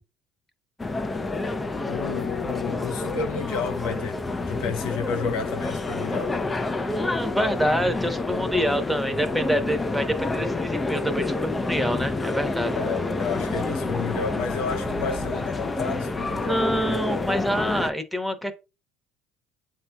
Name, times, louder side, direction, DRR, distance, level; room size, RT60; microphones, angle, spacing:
sound 1, 0.8-17.9, left 2 dB, 20° left, 0.5 m, -28 dB
voice 1, 1.8-6.4 12.7-16.7, left 6 dB, 80° left, 0.5 m, -31 dB
voice 2, 6.9-12.8 16.3-18.5, equal, ahead, 0.9 m, -26 dB
7.5 x 2.8 x 2.3 m
supercardioid pair, 85°, 0 cm